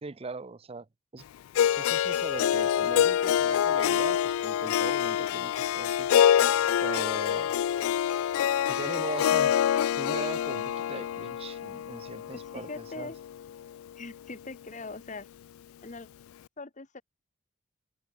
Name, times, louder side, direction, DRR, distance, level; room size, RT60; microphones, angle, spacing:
voice 1, 0.0-0.9 1.1-1.2 1.8-6.1 6.8-7.5 8.7-9.6 10.0-13.1, right 3 dB, 30° right, 0.5 m, -40 dB
Harp, 1.5-13.7, left 10 dB, 85° left, 0.3 m, -26 dB
voice 2, 12.3-13.2 13.9-15.3 15.8-16.1 16.6-17.0, left 3 dB, 35° left, 1.2 m, -41 dB
open air
head